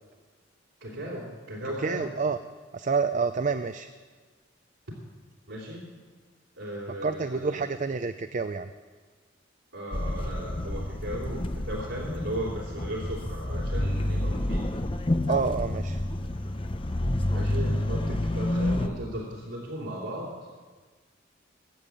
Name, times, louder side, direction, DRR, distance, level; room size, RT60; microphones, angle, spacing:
voice 1, 0.8-2.1 5.5-5.9 6.6-7.6 9.7-14.7 17.3-20.3, right 1 dB, 85° right, -5 dB, 3.2 m, -36 dB
voice 2, 1.8-2.4 2.7-3.9 7.0-8.7 15.3-16.0, right 4 dB, 40° right, 10 dB, 0.5 m, -28 dB
sound 1, 9.9-18.9, left 1 dB, 30° left, 0.8 m, -29 dB
20.5 x 7.4 x 8.4 m, 1.5 s
head